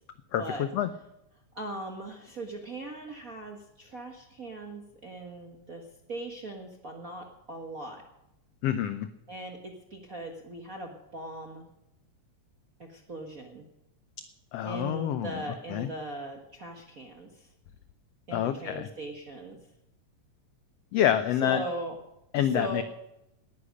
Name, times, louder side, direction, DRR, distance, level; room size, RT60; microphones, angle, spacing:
voice 1, 0.3-0.9 8.6-9.1 14.5-15.4 15.7-15.9 18.3-18.9 20.9-21.6 22.3-22.8, left 10 dB, 85° left, 11 dB, 1.4 m, -27 dB
voice 2, 1.5-8.0 9.3-11.6 12.8-13.6 14.6-17.5 18.3-19.6 21.4-22.0 22.3-22.8, right 2 dB, 45° right, 3 dB, 1.1 m, -39 dB
18.5 x 10.0 x 6.4 m, 0.86 s
omnidirectional pair, 3.6 m